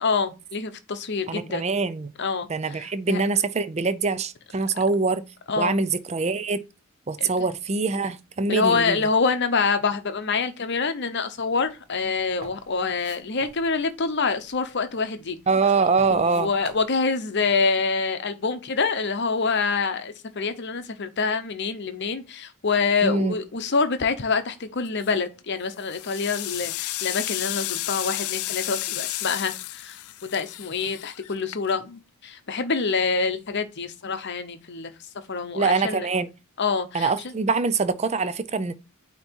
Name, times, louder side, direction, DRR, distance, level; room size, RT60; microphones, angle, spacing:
voice 1, 0.0-1.6 2.2-2.8 3.1-3.2 5.5-5.8 7.2-7.3 8.5-15.4 16.1-31.9 32.2-34.9 35.3-36.1 36.6-37.3, left 4 dB, 50° left, 0.8 m, -26 dB
voice 2, 1.3-2.1 2.5-5.2 5.6-6.6 7.1-9.0 15.5-16.5 23.0-23.4 35.5-36.3 36.9-38.7, right 4 dB, 30° right, 0.5 m, -24 dB
sound 1, 11.3-16.9, right 3 dB, 80° right, 1.4 m, -48 dB
sound 2, 24.9-25.3 25.7-32.0, left 16 dB, 90° left, 0.4 m, -32 dB
8.8 x 2.9 x 4.5 m
head